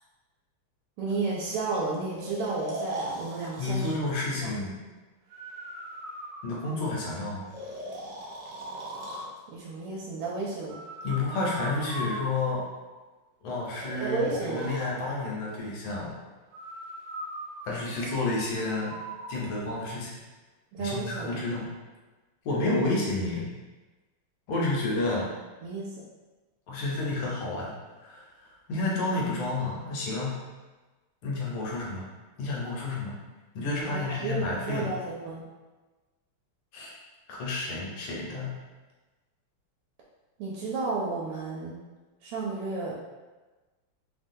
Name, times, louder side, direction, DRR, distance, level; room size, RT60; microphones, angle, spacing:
voice 1, 1.0-4.0 4.4-4.5 9.5-10.8 14.0-14.7 20.7-21.4 25.6-25.9 33.9-35.4 40.4-41.8 42.2-42.9, right 3 dB, 90° right, -5 dB, 1.5 m, -32 dB
Breathing, 2.2-4.0 5.3-7.0 7.5-9.3 10.7-12.9 13.7-14.9 16.5-19.4, right 1 dB, 70° right, 1.0 m, -39 dB
voice 2, 3.6-4.8 6.4-7.5 11.0-12.6 13.4-16.1 17.6-18.9 19.3-20.1 20.8-21.7 22.4-23.5 24.5-25.3 26.7-27.7 28.0-28.3 28.7-30.4 31.2-32.1 32.4-33.2 33.5-34.9 36.7-36.9 37.3-38.6, left 2 dB, 75° left, -4 dB, 1.5 m, -30 dB
3.7 x 2.2 x 2.6 m, 1.2 s
omnidirectional pair, 2.4 m